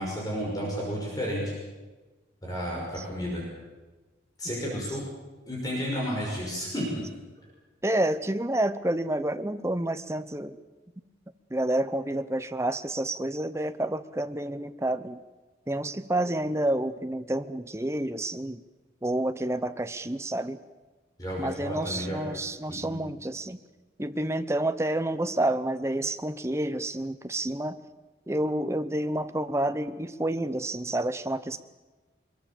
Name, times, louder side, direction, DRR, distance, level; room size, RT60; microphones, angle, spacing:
voice 1, 0.0-1.5 2.4-3.4 4.4-5.0 5.5-7.0 21.2-22.2 22.7-23.0, equal, 20° left, -3 dB, 5.8 m, -32 dB
voice 2, 4.4-4.8 7.8-10.6 11.5-15.2 15.7-18.6 19.0-20.6 21.4-23.6 24.0-27.8 28.3-31.6, right 1 dB, 15° right, 10 dB, 0.8 m, -29 dB
23.5 x 22.5 x 7.1 m, 1.2 s
head